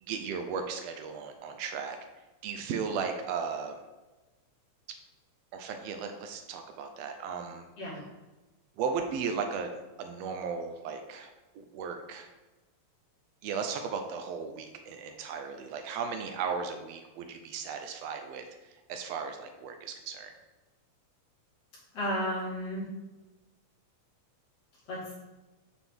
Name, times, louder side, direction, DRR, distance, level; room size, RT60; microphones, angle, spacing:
voice 1, 0.0-2.0 2.4-3.7 5.5-7.6 8.8-9.7 10.0-11.3 11.5-12.3 13.4-18.5 18.9-20.3, right 6 dB, 80° right, 5 dB, 1.5 m, -36 dB
voice 2, 21.9-22.9 24.9-25.1, equal, 55° left, -8 dB, 3.4 m, -33 dB
7.5 x 4.1 x 3.5 m, 1.1 s
omnidirectional pair, 3.4 m